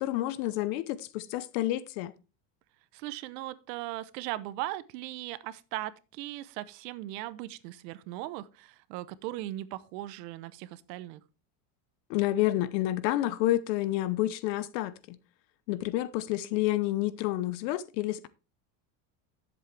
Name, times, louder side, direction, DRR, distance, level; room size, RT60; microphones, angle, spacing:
voice 1, 0.0-2.1 12.1-15.2 15.7-18.3, left 15 dB, 75° left, 1.0 m, -29 dB
voice 2, 2.9-11.2, right 15 dB, 75° right, 1.0 m, -38 dB
11.0 x 7.5 x 3.3 m
cardioid pair, 160°, 49 cm